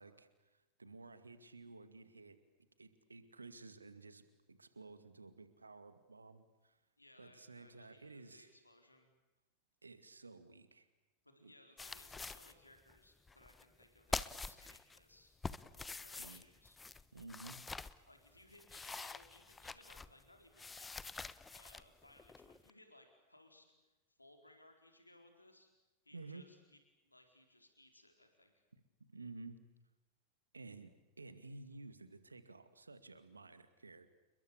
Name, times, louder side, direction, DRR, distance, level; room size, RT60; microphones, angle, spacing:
voice 1, 0.0-2.4 2.8-6.8 7.2-8.5 9.8-10.9 11.4-11.5 15.7-15.8 16.2-16.5 17.1-17.6 26.1-26.4 28.7-28.8 29.1-29.6 30.5-34.1, right 3 dB, 80° right, 11 dB, 2.2 m, -54 dB
voice 2, 7.0-9.1 11.2-15.3 15.8-16.8 18.1-20.9 21.5-25.7 26.0-28.6, left 1 dB, 85° left, 5 dB, 4.4 m, -64 dB
sound 1, 11.8-12.5 12.9-13.0 13.3-13.8 14.1-15.0 15.4-17.9 18.4-20.2 20.6-22.7, left 4 dB, 10° left, 1.1 m, -46 dB
29.5 x 22.5 x 8.5 m, 1.1 s
figure-of-eight pair, 90°, 0 cm